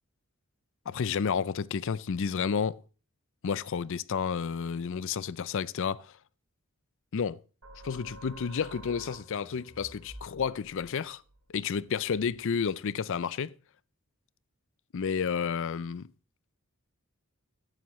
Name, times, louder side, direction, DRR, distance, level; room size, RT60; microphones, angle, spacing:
voice 1, 0.9-2.8 3.4-6.1 7.1-7.4 7.8-11.2 11.5-13.5 14.9-16.1, left 6 dB, 60° left, 0.4 m, -31 dB
sound 1, 7.6-12.9, right 1 dB, 80° right, 4.1 m, -51 dB
14.5 x 11.0 x 3.1 m
head